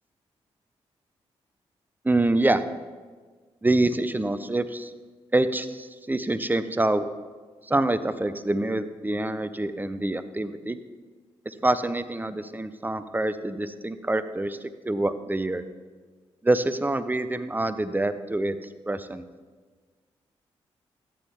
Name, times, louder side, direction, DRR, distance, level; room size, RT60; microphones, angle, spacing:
voice 1, 2.0-2.6 3.6-4.9 5.3-7.1 7.7-10.8 11.5-15.6 16.4-18.6 18.9-19.2, right 2 dB, 15° right, 12 dB, 0.7 m, -26 dB
13.5 x 9.0 x 3.5 m, 1.4 s
supercardioid pair, 45°, 12 cm